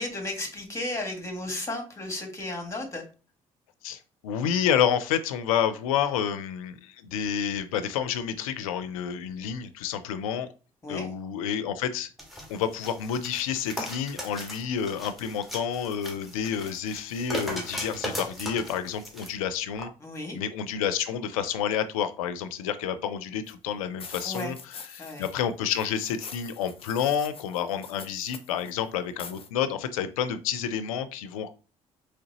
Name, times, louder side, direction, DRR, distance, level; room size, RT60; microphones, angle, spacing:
voice 1, 0.0-3.0 10.8-11.1 20.0-20.4 24.2-24.5 25.0-25.2, left 2 dB, 15° left, 4 dB, 1.6 m, -34 dB
voice 2, 3.8-10.5 10.9-12.1 12.5-19.9 20.3-24.6 24.9-31.5, left 8 dB, 85° left, 11 dB, 0.4 m, -29 dB
sound 1, 12.2-19.3 19.8-19.9, equal, ahead, 1.3 m, -38 dB
sound 2, 23.5-23.6 24.0-25.4 25.7-28.7 29.2-29.5, left 5 dB, 35° left, 0.6 m, -44 dB
3.8 x 3.1 x 2.8 m, 0.34 s
hypercardioid pair, 50°, 17 cm